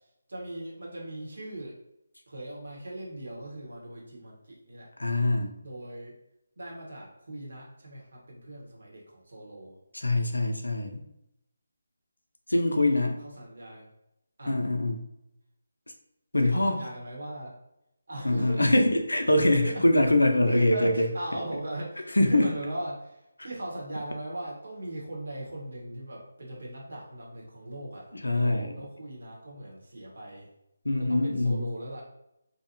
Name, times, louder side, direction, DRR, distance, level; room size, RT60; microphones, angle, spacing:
voice 1, 0.3-1.8 2.3-4.9 5.6-6.1 6.6-9.8 12.6-13.9 14.4-14.6 16.4-17.5 18.1-18.7 19.6-19.8 20.5-30.5 31.0-32.0, right 1 dB, 65° right, -3 dB, 1.1 m, -39 dB
voice 2, 5.0-5.5 9.9-11.0 12.5-13.2 14.5-15.1 16.3-16.8 18.2-21.1 22.1-22.5 28.1-28.7 30.8-31.7, left 1 dB, 80° left, 5 dB, 0.5 m, -24 dB
2.7 x 2.2 x 2.7 m, 0.84 s
figure-of-eight pair, 155°, 0 cm